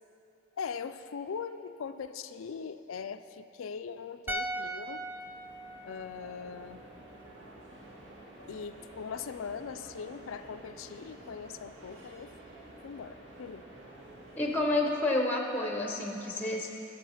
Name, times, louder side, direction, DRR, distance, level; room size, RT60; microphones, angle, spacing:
voice 1, 0.6-5.0 5.8-6.8 8.5-12.3 12.8-13.6, left 6 dB, 90° left, 11 dB, 0.4 m, -40 dB
sound 1, 4.0-14.9, right 1 dB, 70° right, 1.7 m, -51 dB
sound 2, 4.3-7.5 7.7-7.9, right 1 dB, 10° right, 0.3 m, -40 dB
voice 2, 14.4-16.7, left 2 dB, 10° left, 1 dB, 0.7 m, -29 dB
12.0 x 7.3 x 5.7 m, 2.9 s
head